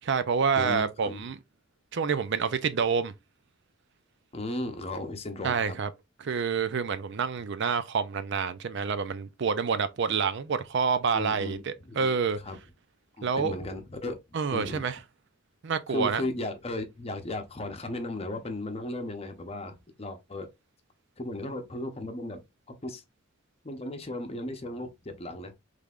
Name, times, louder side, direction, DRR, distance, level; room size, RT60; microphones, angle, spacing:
voice 1, 0.0-1.4 1.9-3.1 5.4-5.9 6.2-12.4 13.2-13.5 14.3-15.0 15.6-16.2, right 6 dB, 55° right, 0.5 m, -28 dB
voice 2, 0.5-1.3 4.3-5.8 11.1-12.2 12.4-12.6 13.2-14.2 14.5-14.9 15.9-20.5 21.2-22.4 22.8-23.0 23.6-25.5, left 2 dB, 30° left, 0.8 m, -35 dB
5.3 x 3.3 x 2.4 m
head